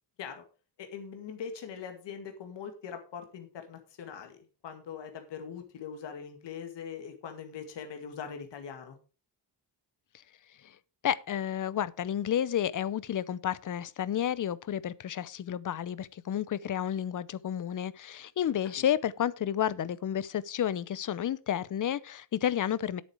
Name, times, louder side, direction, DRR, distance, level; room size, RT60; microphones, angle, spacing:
voice 1, 0.8-9.0 18.8-18.9, left 7 dB, 75° left, 2.2 m, -42 dB
voice 2, 11.0-23.0, left 10 dB, 45° left, 0.7 m, -31 dB
10.0 x 8.7 x 4.9 m
wide cardioid pair, 140°, 43 cm